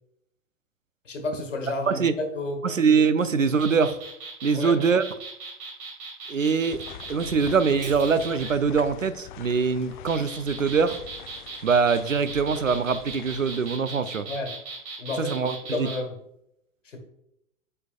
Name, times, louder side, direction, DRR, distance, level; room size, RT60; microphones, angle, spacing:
voice 1, 1.0-2.7 4.5-4.8 14.3-14.6 15.0-16.2 16.8-17.0, left 2 dB, 75° left, 5 dB, 1.5 m, -31 dB
voice 2, 2.6-4.0 4.4-5.0 6.3-6.8 7.1-11.0 11.6-14.3 15.2-15.9, right 5 dB, 85° right, 14 dB, 0.6 m, -23 dB
sound 1, 3.5-8.5 9.8-16.0, right 4 dB, 45° right, 2.0 m, -38 dB
sound 2, 6.7-13.8, left 10 dB, 40° left, 0.4 m, -44 dB
Shatter, 7.8-8.8, right 3 dB, 20° right, 1.5 m, -48 dB
7.9 x 5.5 x 2.4 m, 0.79 s
figure-of-eight pair, 95°, 38 cm